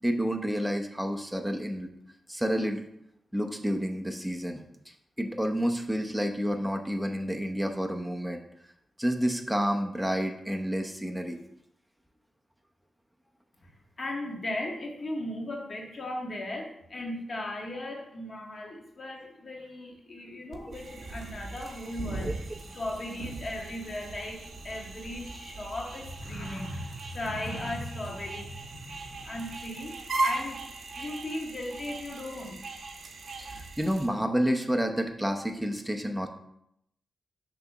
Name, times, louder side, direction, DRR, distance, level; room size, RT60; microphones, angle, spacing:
voice 1, 0.0-1.9 2.3-2.8 3.3-4.6 5.2-8.4 9.0-11.4 22.2-22.3 33.4-36.3, equal, ahead, 4 dB, 0.8 m, -29 dB
voice 2, 14.0-22.4 22.7-29.9 30.2-30.6 30.9-32.6, left 1 dB, 40° left, 0 dB, 1.7 m, -37 dB
sound 1, 20.5-34.1, right 2 dB, 60° right, 1.1 m, -38 dB
6.8 x 3.4 x 6.0 m, 0.77 s
wide cardioid pair, 120°, 0 cm